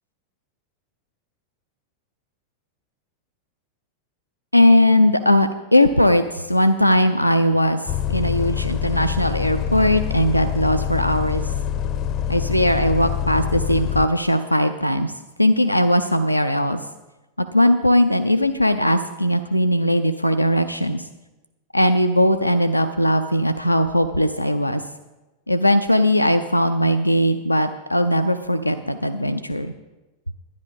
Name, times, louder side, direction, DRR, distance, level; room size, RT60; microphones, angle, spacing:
voice 1, 4.5-7.8 8.1-11.4 12.3-15.1 15.4-16.8 17.4-21.0 21.7-24.8 25.5-29.7, left 1 dB, 90° left, 8 dB, 0.5 m, -19 dB
Bus, 7.9-14.1, left 9 dB, 35° left, 0.6 m, -25 dB
10.5 x 10.5 x 5.3 m, 1.1 s
figure-of-eight pair, 90°, 0 cm